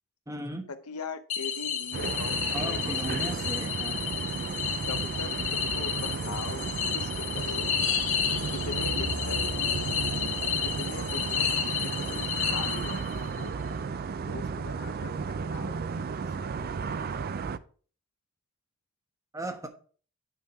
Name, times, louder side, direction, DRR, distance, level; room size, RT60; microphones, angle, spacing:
voice 1, 0.3-0.7 2.5-4.0 19.3-19.7, right 1 dB, 15° right, 1.1 m, -36 dB
voice 2, 0.9-3.2 4.9-7.7 8.5-9.4 10.6-11.5 11.8-13.5 14.3-16.3 16.6-16.7, left 4 dB, 90° left, 0.9 m, -41 dB
sound 1, 1.3-13.3, left 8 dB, 65° left, 1.8 m, -31 dB
sound 2, 1.9-17.6, right 5 dB, 45° right, 0.4 m, -34 dB
sound 3, 8.2-10.5, right 2 dB, 85° right, 3.7 m, -36 dB
9.5 x 3.6 x 5.7 m
head